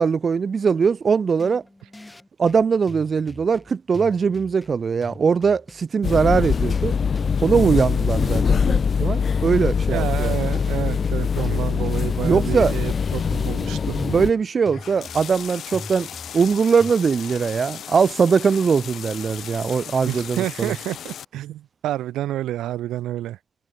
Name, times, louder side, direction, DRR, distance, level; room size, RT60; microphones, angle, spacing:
voice 1, 0.0-1.6 2.4-7.0 7.4-10.3 12.2-12.7 13.9-16.1 16.3-20.7, right 5 dB, 40° right, 0.5 m, -21 dB
sound 1, 1.4-16.9, left 2 dB, 10° left, 5.3 m, -43 dB
sound 2, 6.0-14.3, left 6 dB, 45° left, 0.3 m, -22 dB
voice 2, 9.9-14.0 20.1-23.4, right 13 dB, 85° right, 0.9 m, -29 dB
sound 3, 14.7-21.2, left 9 dB, 65° left, 5.5 m, -37 dB
cardioid pair, 90°, 0 cm